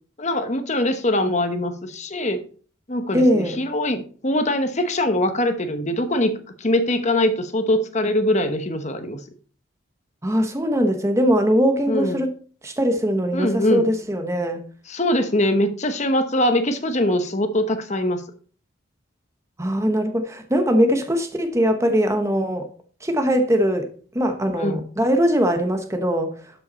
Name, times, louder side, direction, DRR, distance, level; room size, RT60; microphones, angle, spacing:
voice 1, 0.2-2.4 2.9-9.2 11.9-12.2 13.3-13.8 14.9-18.2 24.5-24.8, left 1 dB, 35° left, 1.0 m, -22 dB
voice 2, 3.1-3.6 10.2-12.3 12.6-14.7 19.6-22.7 23.0-23.9 24.1-26.4, equal, 15° right, 0.9 m, -21 dB
12.0 x 5.6 x 4.1 m
head